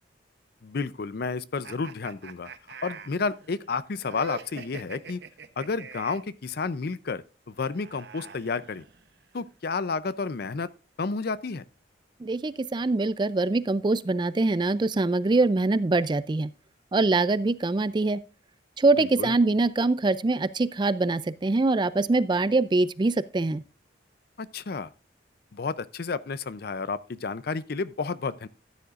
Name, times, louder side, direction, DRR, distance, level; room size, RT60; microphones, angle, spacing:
voice 1, 0.6-2.5 2.8-5.2 5.6-8.8 9.3-10.7 11.0-11.6 19.0-19.3 24.4-24.9 25.5-28.5, left 4 dB, 55° left, 0.5 m, -31 dB
sound 1, 1.6-6.3 7.5-9.2, right 4 dB, 65° right, 0.8 m, -44 dB
voice 2, 12.2-16.5 16.9-18.2 18.8-23.6, right 3 dB, 25° right, 0.4 m, -24 dB
13.5 x 9.5 x 2.5 m
head